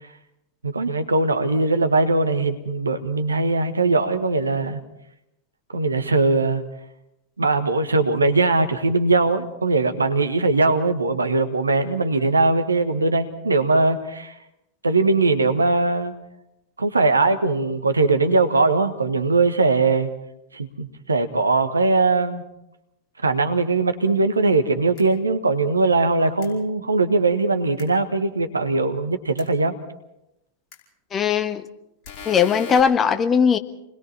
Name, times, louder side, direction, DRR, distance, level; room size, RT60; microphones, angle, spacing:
voice 1, 0.6-4.8 5.7-6.6 7.4-14.3 14.8-16.1 16.8-20.1 20.5-22.4 23.2-29.7, right 3 dB, 80° right, 8 dB, 1.5 m, -20 dB
sound 1, 25.0-25.1 26.4-26.5 27.8-27.9 29.4-29.5 30.7-30.8 32.0-32.8, left 7 dB, 40° left, 5.1 m, -38 dB
voice 2, 31.1-31.6 32.2-33.6, left 7 dB, 25° left, 9 dB, 1.2 m, -19 dB
29.0 x 21.0 x 4.3 m, 0.86 s
figure-of-eight pair, 90°, 0 cm